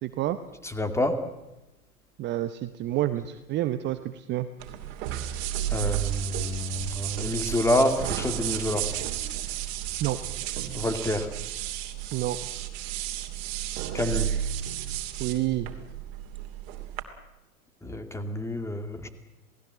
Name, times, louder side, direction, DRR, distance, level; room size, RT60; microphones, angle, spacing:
voice 1, 0.0-0.4 2.2-4.5 10.0-10.2 12.1-12.4 15.2-15.7, right 14 dB, 25° right, 11 dB, 0.9 m, -28 dB
voice 2, 0.6-1.2 5.7-8.9 10.7-11.3 13.9-14.3 17.8-19.1, left 1 dB, 5° left, 8 dB, 2.3 m, -28 dB
sound 1, 4.6-17.0, right 11 dB, 45° right, 2.7 m, -32 dB
28.0 x 19.0 x 7.7 m, 0.99 s
figure-of-eight pair, 100°, 44 cm